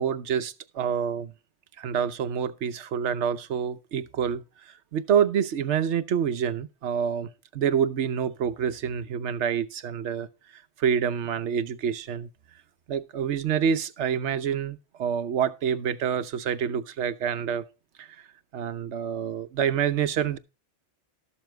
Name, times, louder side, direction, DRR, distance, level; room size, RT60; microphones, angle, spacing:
voice 1, 0.0-1.3 1.8-10.3 10.5-12.3 12.9-17.6 18.0-18.1 18.5-20.4, right 8 dB, 75° right, 1.1 m, -27 dB
13.0 x 7.2 x 4.5 m
omnidirectional pair, 1.2 m